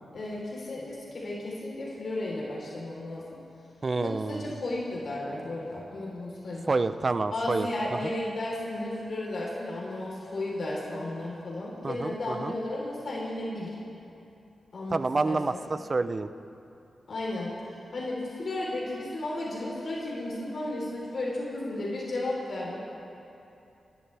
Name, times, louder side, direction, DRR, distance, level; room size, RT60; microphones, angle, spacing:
voice 1, 0.1-3.2 3.9-6.6 7.3-13.7 14.7-15.7 17.1-17.5 17.9-22.8, left 2 dB, 60° left, -5 dB, 3.9 m, -34 dB
voice 2, 3.8-4.5 6.7-7.7 8.0-8.1 11.8-12.6 14.9-16.3, right 3 dB, 45° right, 12 dB, 0.7 m, -28 dB
29.0 x 12.0 x 3.5 m, 2.8 s
cardioid pair, 60°, 0 cm